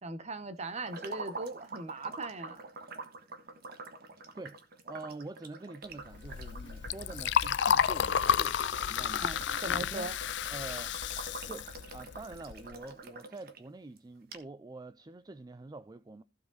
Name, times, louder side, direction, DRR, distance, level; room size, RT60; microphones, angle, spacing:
voice 1, 0.0-2.6 9.2-10.1, right 2 dB, 40° right, 1.1 m, -39 dB
sound 1, 0.8-13.6 14.0-14.1 14.3-14.4, right 3 dB, 60° right, 1.5 m, -46 dB
voice 2, 4.4-8.6 8.9-10.1 10.5-10.9 11.5-16.2, right 2 dB, 20° right, 0.4 m, -46 dB
Liquid, 6.1-12.8, left 8 dB, 70° left, 0.5 m, -31 dB
15.0 x 5.2 x 4.0 m
head